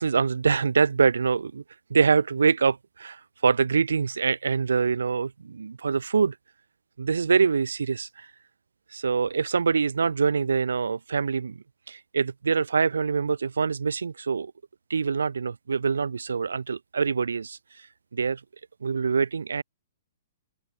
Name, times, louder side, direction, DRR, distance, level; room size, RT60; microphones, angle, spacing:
voice 1, 0.0-1.6 1.9-6.4 7.0-8.3 8.9-11.6 11.9-14.5 14.9-18.4 18.8-19.6, right 5 dB, 85° right, 0.6 m, -25 dB
open air
hypercardioid pair, 130°, 0 cm